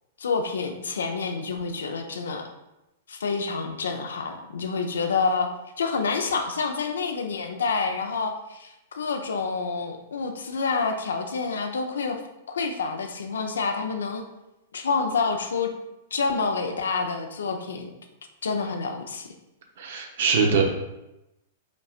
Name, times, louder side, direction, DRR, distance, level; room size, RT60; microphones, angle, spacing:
voice 1, 0.2-2.5 3.1-5.5 5.8-12.2 12.5-14.2 14.7-15.7 16.1-17.9 18.4-19.3, left 4 dB, 85° left, 5 dB, 0.6 m, -28 dB
voice 2, 19.8-20.6, right 5 dB, 70° right, 2 dB, 0.9 m, -22 dB
5.3 x 4.2 x 2.4 m, 0.93 s
hypercardioid pair, 115°, 0 cm